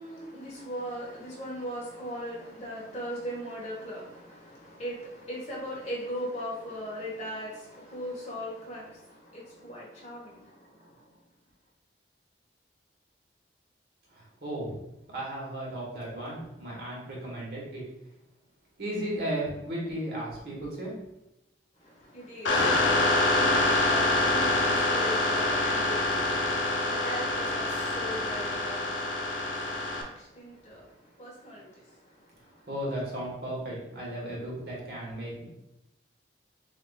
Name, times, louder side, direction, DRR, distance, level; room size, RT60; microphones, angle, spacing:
voice 1, 0.0-11.1 21.7-32.7, equal, 35° left, -5 dB, 1.6 m, -39 dB
voice 2, 14.1-14.8 15.1-17.9 18.8-20.9 32.7-35.4, right 1 dB, 55° right, -4 dB, 1.5 m, -35 dB
sound 1, 22.5-30.0, left 2 dB, 90° left, 0.8 m, -26 dB
6.5 x 2.9 x 2.4 m, 0.88 s
head